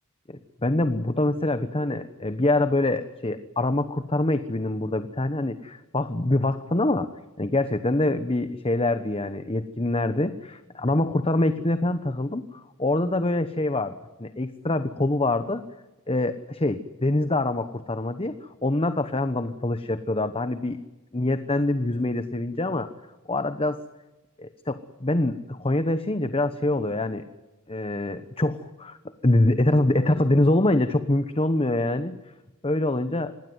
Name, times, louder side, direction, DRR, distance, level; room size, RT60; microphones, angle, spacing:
voice 1, 0.6-7.1 7.4-15.6 16.1-18.4 18.6-20.8 21.1-22.9 23.3-23.8 24.4-27.2 27.7-29.0 29.2-32.2 32.6-33.3, left 2 dB, 25° left, 11 dB, 1.0 m, -25 dB
26.0 x 20.5 x 9.5 m, 1.1 s
head